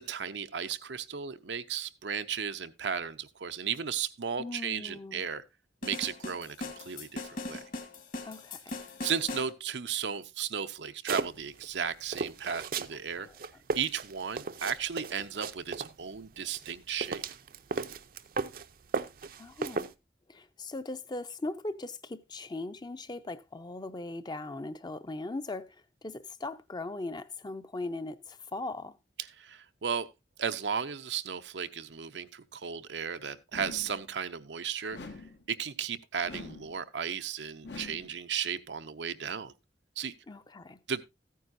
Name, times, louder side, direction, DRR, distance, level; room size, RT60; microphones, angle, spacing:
voice 1, 0.0-5.4 5.8-7.6 9.0-13.3 13.7-17.2 29.2-30.1 30.4-35.1 35.5-39.5 40.0-40.1 40.9-41.0, right 7 dB, 90° right, 0.7 m, -35 dB
voice 2, 4.4-5.3 8.2-8.8 13.2-13.3 19.4-19.9 20.3-29.0 40.3-40.8, left 2 dB, 25° left, 0.6 m, -39 dB
sound 1, 5.8-9.5, left 2 dB, 50° left, 1.7 m, -40 dB
sound 2, 11.1-11.7 12.1-13.0 13.3-15.9 16.5-18.7 18.9-19.9, right 4 dB, 55° right, 0.6 m, -35 dB
sound 3, 33.5-34.1 34.9-35.5 36.2-36.8 37.6-38.2, left 3 dB, 80° left, 1.4 m, -44 dB
14.5 x 9.3 x 2.6 m
head